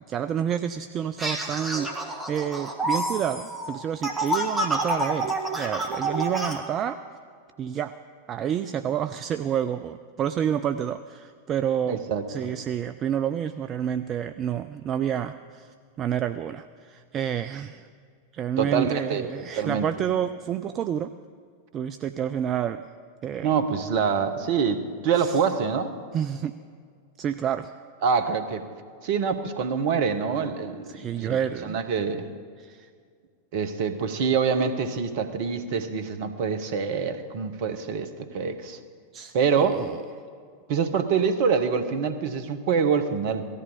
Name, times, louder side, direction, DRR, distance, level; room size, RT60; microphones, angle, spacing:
voice 1, 0.0-7.0 7.6-7.9 8.3-12.0 12.3-17.9 18.3-21.1 21.7-22.8 23.2-23.5 25.2-25.4 26.1-26.5 27.2-27.7 30.9-31.8 32.6-32.9 39.1-40.0, right 9 dB, 30° right, 11 dB, 0.4 m, -29 dB
sound 1, 1.2-6.6, right 1 dB, 10° right, 1.8 m, -28 dB
voice 2, 11.9-12.2 18.6-19.3 19.6-19.9 23.4-26.0 28.0-28.7 29.0-31.4 31.6-32.3 33.5-38.8 39.3-39.8 40.7-43.5, right 6 dB, 50° right, 10 dB, 1.2 m, -25 dB
17.5 x 13.5 x 5.1 m, 2.1 s
figure-of-eight pair, 90°, 0 cm